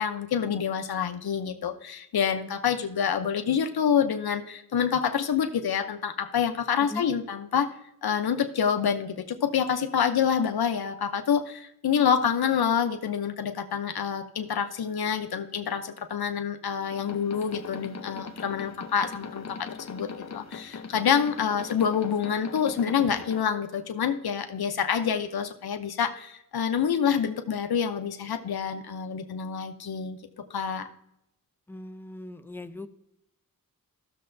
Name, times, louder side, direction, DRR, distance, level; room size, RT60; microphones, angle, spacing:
voice 1, 0.0-7.7 8.0-30.2 30.5-30.9, left 7 dB, 85° left, 7 dB, 0.7 m, -27 dB
sound 1, 16.9-23.4, left 5 dB, 45° left, 0.8 m, -40 dB
voice 2, 31.7-32.9, left 2 dB, 5° left, 9 dB, 0.5 m, -39 dB
14.5 x 6.7 x 2.6 m, 0.83 s
wide cardioid pair, 100°, 36 cm